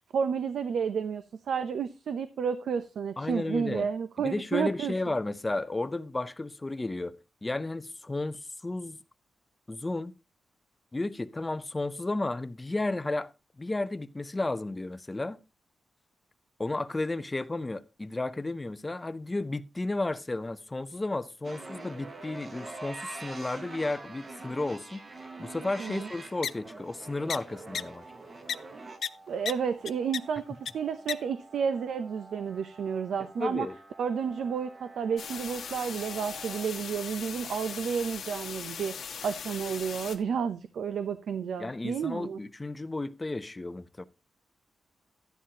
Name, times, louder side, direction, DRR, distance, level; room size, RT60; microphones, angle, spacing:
voice 1, 0.1-4.9 25.8-26.1 29.3-33.7 34.0-42.4, right 6 dB, 90° right, 0.6 m, -31 dB
voice 2, 3.2-3.9 4.2-9.0 9.7-10.1 10.9-13.3 13.6-15.4 16.6-28.0 33.4-33.7 41.6-44.0, left 2 dB, 15° left, 0.5 m, -33 dB
sound 1, 21.4-36.7, right 3 dB, 35° right, 1.2 m, -46 dB
sound 2, 26.4-26.5 27.3-27.4 27.7-27.8 28.5-28.6 29.0-29.1 29.4-29.5 29.8-30.2 30.6-30.7 31.1-31.2, left 7 dB, 65° left, 0.4 m, -30 dB
sound 3, 35.2-40.2, left 7 dB, 85° left, 1.5 m, -40 dB
12.5 x 10.0 x 2.8 m
wide cardioid pair, 175°, 0 cm